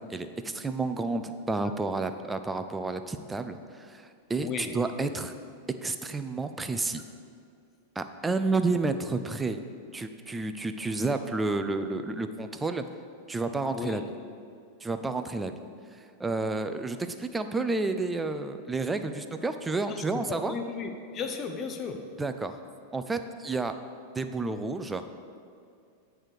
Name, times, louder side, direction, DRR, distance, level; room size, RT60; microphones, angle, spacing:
voice 1, 0.0-5.3 5.7-7.0 8.0-9.6 9.9-12.8 13.3-14.0 14.8-15.6 16.2-20.5 22.2-22.5 22.9-23.7 24.1-25.1, right 3 dB, 10° right, 8 dB, 0.4 m, -30 dB
voice 2, 4.4-4.8 13.7-14.0 20.1-22.1, left 5 dB, 30° left, 6 dB, 0.6 m, -35 dB
8.7 x 3.4 x 6.1 m, 2.4 s
figure-of-eight pair, 90°, 0 cm